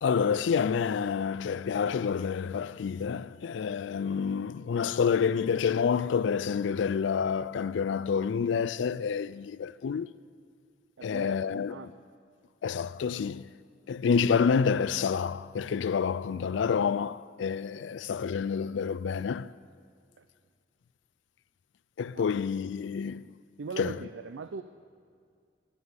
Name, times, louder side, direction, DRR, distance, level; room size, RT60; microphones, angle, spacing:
voice 1, 0.0-10.1 11.0-11.8 12.6-13.5 13.9-19.5 22.0-23.3 23.8-24.0, left 6 dB, 75° left, 0.4 m, -28 dB
voice 2, 11.0-12.0 20.2-20.3 22.1-22.3 23.6-24.6, right 4 dB, 85° right, 0.5 m, -40 dB
16.0 x 7.0 x 9.6 m
head